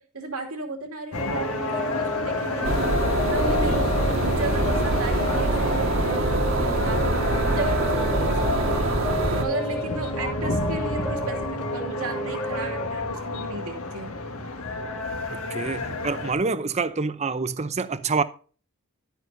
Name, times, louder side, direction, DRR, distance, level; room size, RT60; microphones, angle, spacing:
voice 1, 0.0-3.0 3.3-8.7 9.4-14.2 15.8-16.0, right 3 dB, 80° right, 2.5 m, -34 dB
sound 1, 1.1-16.3, left 2 dB, 80° left, 1.6 m, -30 dB
sound 2, 1.2-12.9, equal, 15° left, 0.9 m, -32 dB
sound 3, 2.6-9.4, right 2 dB, 65° right, 1.7 m, -24 dB
voice 2, 15.3-18.2, right 4 dB, 30° right, 0.6 m, -27 dB
12.0 x 9.0 x 2.6 m
head